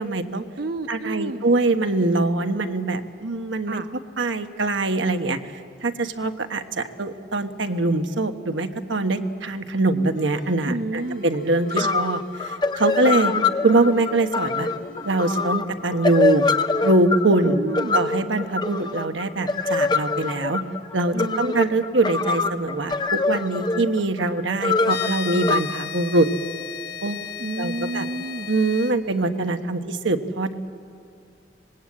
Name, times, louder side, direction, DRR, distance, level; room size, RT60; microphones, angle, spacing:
voice 1, 0.0-0.4 0.9-3.8 4.2-5.4 5.8-13.3 13.6-14.7 15.0-16.5 16.8-17.6 17.9-20.6 20.9-26.3 27.0-27.3 27.6-28.1 28.5-30.6, right 2 dB, 90° right, 7 dB, 1.3 m, -23 dB
voice 2, 0.6-1.4 3.7-3.9 10.6-11.2 11.7-12.0 13.1-13.5 17.4-18.0 21.1-21.6 27.4-28.5, right 2 dB, 50° right, 9 dB, 0.6 m, -31 dB
sound 1, 10.1-10.6 11.0-12.5 12.8-14.3 14.6-15.5, left 1 dB, 85° left, 3.8 m, -42 dB
sound 2, 11.3-11.4 11.7-25.6, left 4 dB, 25° left, 0.5 m, -24 dB
sound 3, 24.8-28.9, left 7 dB, 55° left, 1.3 m, -34 dB
25.0 x 20.0 x 8.7 m, 2.3 s
head